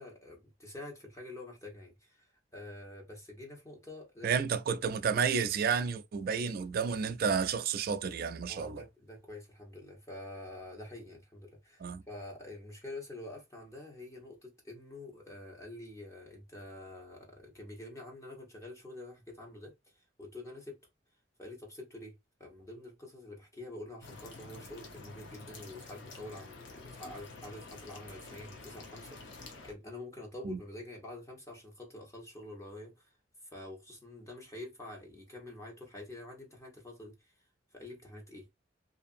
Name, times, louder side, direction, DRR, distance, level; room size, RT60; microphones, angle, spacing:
voice 1, 0.0-4.3 8.5-20.8 21.4-22.1 22.4-33.1 33.5-37.3 37.7-38.5, left 2 dB, 15° left, 1.0 m, -47 dB
voice 2, 4.2-8.8 11.8-12.0 30.5-30.6, right 6 dB, 50° right, 0.3 m, -31 dB
sound 1, 24.0-29.7, left 3 dB, 80° left, 0.9 m, -49 dB
2.8 x 2.5 x 2.5 m
head